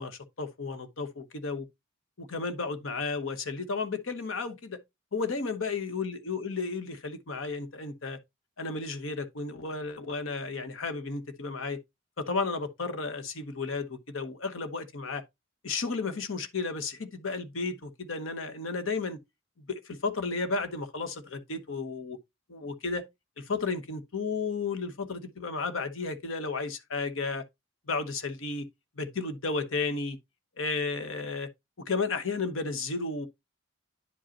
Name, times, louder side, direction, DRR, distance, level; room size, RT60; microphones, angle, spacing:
voice 1, 0.0-1.7 2.2-4.8 5.1-8.2 8.6-11.8 12.2-15.2 15.6-19.2 19.7-22.2 22.5-23.0 23.4-27.4 27.9-28.7 29.0-30.2 30.6-31.5 31.9-33.3, left 4 dB, 75° left, 1.0 m, -33 dB
9.7 x 5.0 x 2.9 m
head